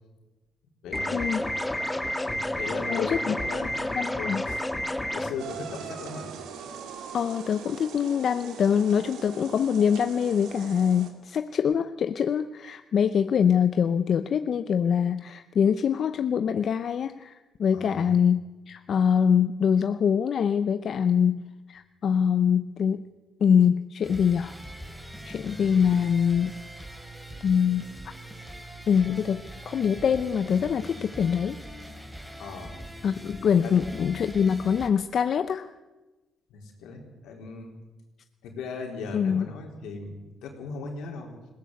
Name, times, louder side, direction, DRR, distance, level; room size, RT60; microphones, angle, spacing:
voice 1, 0.8-1.5 2.2-4.6 5.1-6.3 17.7-18.1 32.4-32.8 33.6-33.8 36.5-37.8 38.4-41.3, left 4 dB, 85° left, 2 dB, 4.1 m, -38 dB
sound 1, 0.9-5.3, left 1 dB, 10° left, 1.9 m, -30 dB
voice 2, 2.9-3.4 3.9-4.4 7.1-18.4 18.7-21.4 21.7-23.1 23.4-24.5 25.2-26.5 27.4-28.0 28.9-31.6 33.0-35.7 39.1-39.5, left 7 dB, 60° left, 11 dB, 0.7 m, -24 dB
sound 2, 5.4-11.1, right 7 dB, 85° right, 2.5 m, -41 dB
sound 3, 24.0-34.9, right 1 dB, 5° right, 3.5 m, -42 dB
20.5 x 17.0 x 8.1 m, 1.1 s
cardioid pair, 90°, 0 cm